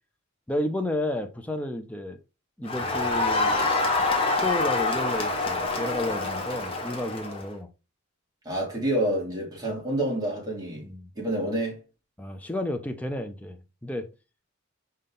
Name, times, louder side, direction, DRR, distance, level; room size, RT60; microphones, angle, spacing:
voice 1, 0.5-2.2 2.6-3.6 4.4-7.7 10.8-11.1 12.2-14.1, left 1 dB, 5° left, 0.5 m, -32 dB
Crowd, 2.7-7.5, left 3 dB, 25° left, 0.9 m, -26 dB
voice 2, 8.4-10.9 11.2-11.8, right 1 dB, 20° right, 2.0 m, -28 dB
5.2 x 2.8 x 3.6 m
head